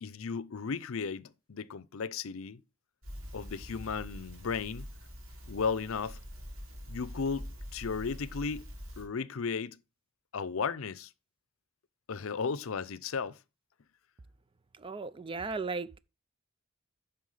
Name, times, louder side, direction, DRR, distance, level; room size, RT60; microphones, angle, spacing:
voice 1, 0.0-2.6 3.3-4.9 5.5-6.2 6.9-8.7 9.0-9.8 10.3-11.1 12.1-13.4, left 5 dB, 70° left, 0.6 m, -35 dB
Crackle, 3.0-9.1, equal, 70° right, 4.1 m, -45 dB
voice 2, 14.8-16.0, right 4 dB, 25° right, 0.4 m, -36 dB
9.4 x 5.9 x 4.8 m
head